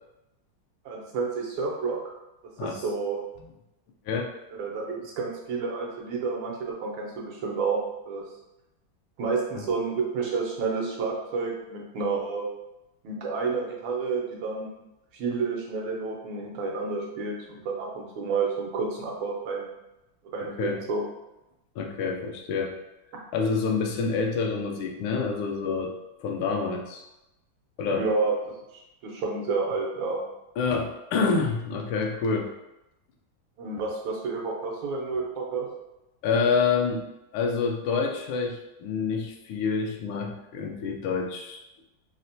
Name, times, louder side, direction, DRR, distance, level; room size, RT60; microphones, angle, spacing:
voice 1, 0.8-2.0 2.6-3.2 4.6-8.2 9.2-12.4 13.0-14.7 15.1-19.7 20.3-21.0 27.9-28.4 29.0-30.2 33.6-35.7, right 4 dB, 90° right, -2 dB, 1.6 m, -30 dB
voice 2, 20.4-20.8 21.8-22.7 23.3-25.9 26.2-27.0 27.8-28.1 30.6-32.5 36.2-41.6, left 5 dB, 85° left, 2 dB, 1.4 m, -27 dB
4.1 x 2.1 x 2.6 m, 0.92 s
omnidirectional pair, 2.2 m